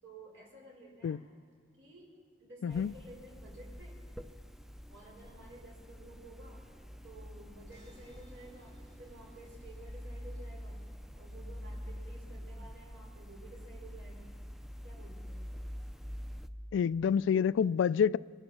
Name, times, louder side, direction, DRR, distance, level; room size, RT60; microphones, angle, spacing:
voice 1, 0.0-1.2 1.8-4.0 4.9-6.6 7.0-10.9 11.2-14.4 14.8-15.5, right 2 dB, 85° right, 4.7 m, -53 dB
sound 1, 2.7-16.5, equal, ahead, 0.4 m, -46 dB
sound 2, 7.7-10.6, equal, 65° right, 2.9 m, -59 dB
voice 2, 16.7-18.2, left 7 dB, 90° left, 0.3 m, -27 dB
24.5 x 11.5 x 4.2 m
head